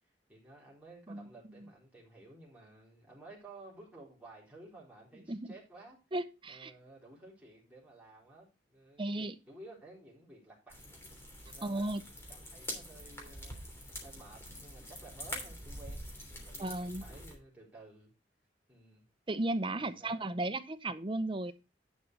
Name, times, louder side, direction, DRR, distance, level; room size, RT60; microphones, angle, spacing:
voice 1, 0.3-6.0 6.5-11.0 11.4-13.6 14.0-18.1 18.7-19.0 19.7-20.3, right 2 dB, 10° right, -5 dB, 3.8 m, -54 dB
voice 2, 6.1-6.7 9.0-9.3 11.6-12.0 16.6-17.0 19.3-21.5, right 2 dB, 30° right, 11 dB, 0.8 m, -35 dB
sound 1, 10.7-17.3, equal, 15° left, 3.1 m, -45 dB
11.0 x 5.4 x 4.5 m, 0.29 s
head